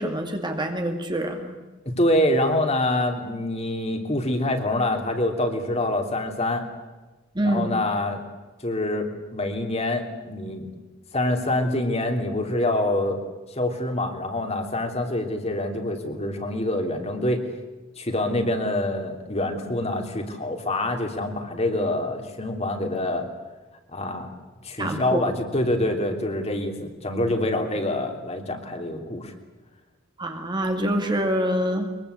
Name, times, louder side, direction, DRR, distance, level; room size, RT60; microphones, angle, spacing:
voice 1, 0.0-1.6 7.3-7.8 24.8-25.3 30.2-31.9, right 1 dB, 20° right, 4 dB, 2.2 m, -26 dB
voice 2, 1.8-6.6 7.4-8.2 8.6-10.7 11.1-13.2 13.5-17.4 18.0-23.3 23.9-24.3 24.6-29.3, left 1 dB, 30° left, 4 dB, 3.2 m, -26 dB
23.5 x 23.0 x 8.3 m, 1.2 s
head